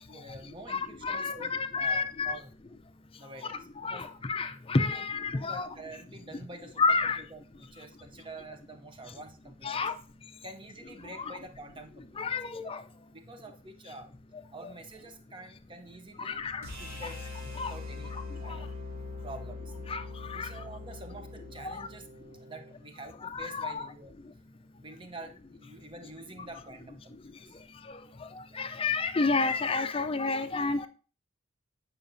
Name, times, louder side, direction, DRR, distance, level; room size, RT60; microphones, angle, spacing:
voice 1, 0.1-2.5 3.2-4.1 4.8-5.0 5.3-6.8 7.2-9.9 10.4-12.4 13.1-14.1 14.5-16.4 16.8-18.1 18.4-18.7 19.2-19.7 20.3-22.1 22.4-24.1 24.8-27.6, right 2 dB, 25° right, 7 dB, 0.8 m, -47 dB
voice 2, 0.7-2.4 3.8-5.7 6.8-7.2 9.6-9.9 11.3-11.4 12.2-12.8 16.2-16.7 17.6-17.7 19.9-20.0 20.3-20.5 21.6-21.9 23.3-23.9 28.6-30.9, left 4 dB, 25° left, 10 dB, 0.5 m, -30 dB
sound 1, 16.6-22.8, left 3 dB, 70° right, 2.4 m, -42 dB
8.6 x 5.7 x 2.6 m, 0.37 s
head